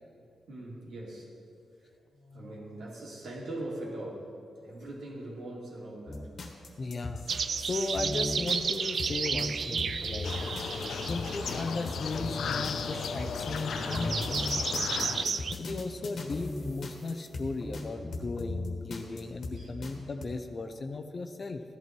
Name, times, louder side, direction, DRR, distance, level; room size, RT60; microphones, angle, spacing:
voice 1, 0.5-1.4 2.1-4.3 4.6-6.3 14.9-15.2 16.6-16.7 19.5-19.7, right 1 dB, 80° right, -4 dB, 3.1 m, -42 dB
sound 1, 6.1-19.9 20.2-20.3, left 2 dB, 55° left, 1.5 m, -38 dB
voice 2, 6.8-10.3 11.1-14.4 15.6-21.6, left 3 dB, 40° left, 7 dB, 0.7 m, -36 dB
sound 2, 7.3-15.5, right 6 dB, 55° right, 0.4 m, -34 dB
sound 3, 10.2-15.2, left 7 dB, 75° left, 0.5 m, -35 dB
15.5 x 11.5 x 4.6 m, 2.4 s
wide cardioid pair, 120°, 0 cm